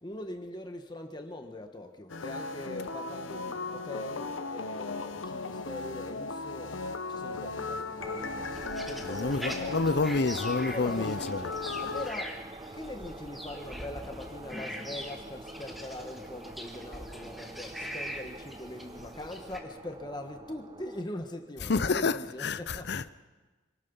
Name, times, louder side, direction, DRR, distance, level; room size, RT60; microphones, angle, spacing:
voice 1, 0.0-6.8 7.1-8.6 8.8-9.9 10.7-12.4 12.7-22.9, left 1 dB, 20° left, 1.4 m, -42 dB
sound 1, 2.1-12.1, left 3 dB, 90° left, 1.0 m, -36 dB
sound 2, 8.0-21.0, right 2 dB, 25° right, 0.6 m, -46 dB
sound 3, 8.5-19.6, equal, ahead, 1.7 m, -43 dB
voice 2, 9.0-11.5 21.7-23.1, left 3 dB, 60° left, 0.7 m, -29 dB
26.0 x 19.0 x 5.5 m
head